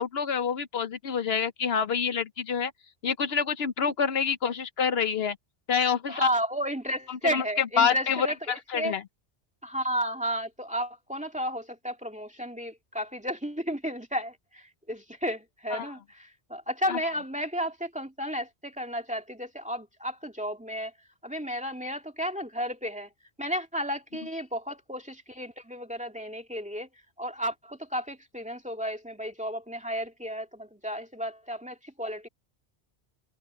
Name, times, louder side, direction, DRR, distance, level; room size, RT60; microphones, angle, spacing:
voice 1, 0.0-2.7 3.0-5.4 5.7-6.3 7.1-9.0 15.7-15.9 16.9-17.0, left 6 dB, 70° left, 1.0 m, -27 dB
voice 2, 6.1-8.9 9.6-20.9 21.2-23.1 23.4-26.9 27.2-32.3, equal, 5° right, 2.2 m, -33 dB
omnidirectional pair, 1.1 m